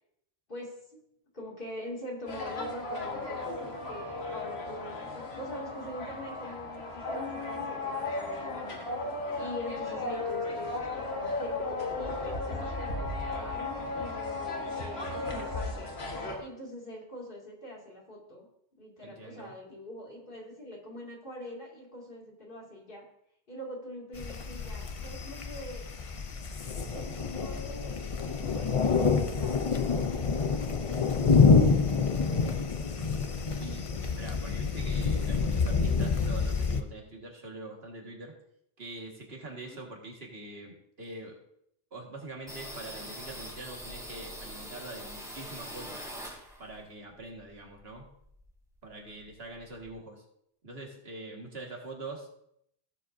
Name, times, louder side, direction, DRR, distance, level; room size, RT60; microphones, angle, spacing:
voice 1, 0.5-1.0 1.3-15.9 16.4-18.5 18.8-23.0 23.5-25.9 26.9-31.5 32.4-32.7 39.5-39.8 49.0-49.2, left 1 dB, 60° left, -2 dB, 2.6 m, -44 dB
sound 1, 2.3-16.4, left 2 dB, 85° left, 1.7 m, -35 dB
voice 2, 19.0-19.5 33.6-38.4 38.8-41.4 41.9-46.0 46.6-48.1 48.8-50.2 50.6-52.3, right 2 dB, 75° right, 0 dB, 2.1 m, -44 dB
sound 2, 24.2-36.8, left 5 dB, 40° left, 0.6 m, -27 dB
sound 3, 42.5-46.8 47.1-48.5 48.8-48.9 49.2-49.9, equal, 5° right, 3.0 m, -43 dB
16.0 x 7.4 x 2.7 m, 0.73 s
omnidirectional pair, 1.0 m